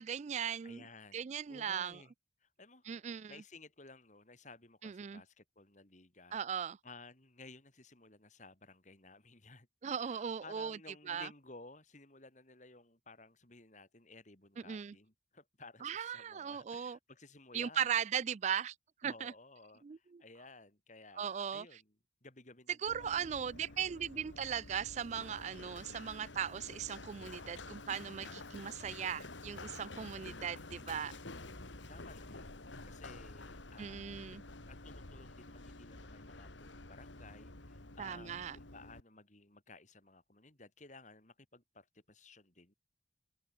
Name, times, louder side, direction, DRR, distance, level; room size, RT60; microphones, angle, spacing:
voice 1, 0.0-0.8 1.1-2.0 2.9-3.4 4.8-5.2 6.3-6.8 9.8-10.8 11.1-11.3 14.7-14.9 15.8-17.0 17.5-18.7 19.0-19.3 19.8-20.2 21.2-21.7 22.8-31.2 33.8-34.4 38.0-38.6, right 8 dB, 35° right, 0.3 m, -38 dB
voice 2, 0.6-1.2 1.5-2.1 2.4-6.4 6.8-17.9 19.0-22.0 22.2-23.4 23.9-24.5 28.2-28.6 31.9-34.4 34.7-42.7, left 3 dB, 40° left, 3.7 m, -56 dB
Run, 22.9-39.0, left 2 dB, 80° left, 2.7 m, -50 dB
head